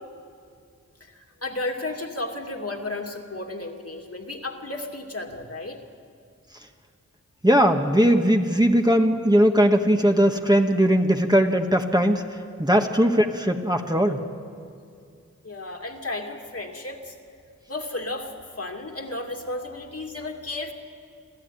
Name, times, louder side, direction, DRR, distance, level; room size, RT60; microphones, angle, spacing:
voice 1, 1.0-5.8 12.7-12.9 15.4-17.1 17.7-20.7, left 2 dB, 55° left, 1 dB, 2.5 m, -33 dB
voice 2, 7.4-12.2 12.6-14.2, equal, 15° right, 3 dB, 1.5 m, -19 dB
26.5 x 14.5 x 9.3 m, 2.4 s
wide cardioid pair, 40°, 30 cm